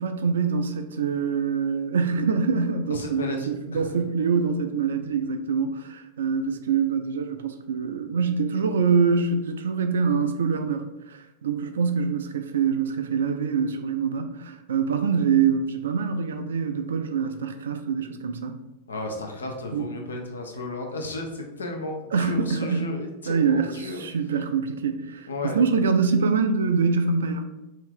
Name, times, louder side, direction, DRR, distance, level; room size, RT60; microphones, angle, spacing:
voice 1, 0.0-18.5 19.7-19.9 22.1-22.9 23.3-27.4, right 5 dB, 65° right, 8 dB, 0.3 m, -25 dB
voice 2, 2.9-3.9 18.9-24.0 25.3-25.6, left 2 dB, 70° left, 2 dB, 0.5 m, -34 dB
2.7 x 2.5 x 3.5 m, 0.96 s
figure-of-eight pair, 90°, 0 cm